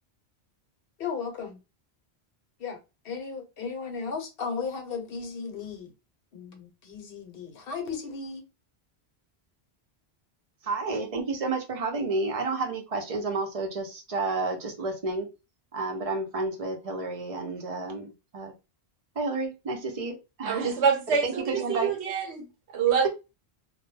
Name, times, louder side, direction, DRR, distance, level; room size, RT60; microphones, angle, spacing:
voice 1, 1.0-1.6 2.6-2.8 3.0-5.9 6.3-8.4, left 5 dB, 65° left, 0.9 m, -35 dB
voice 2, 10.6-15.3 15.7-18.5 19.2-20.8 21.2-21.9, right 3 dB, 40° right, 0.6 m, -31 dB
voice 3, 20.4-21.4 21.7-22.5 22.7-23.1, right 6 dB, 85° right, 1.0 m, -25 dB
2.1 x 2.1 x 3.2 m
omnidirectional pair, 1.1 m